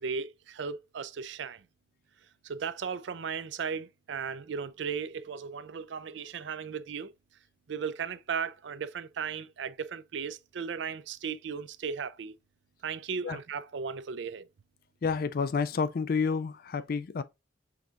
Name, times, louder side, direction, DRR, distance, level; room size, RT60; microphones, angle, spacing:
voice 1, 0.0-1.6 2.4-7.1 7.7-12.3 12.8-14.5, right 6 dB, 70° right, 0.4 m, -36 dB
voice 2, 15.0-17.2, left 5 dB, 50° left, 0.3 m, -29 dB
6.0 x 3.5 x 2.5 m
head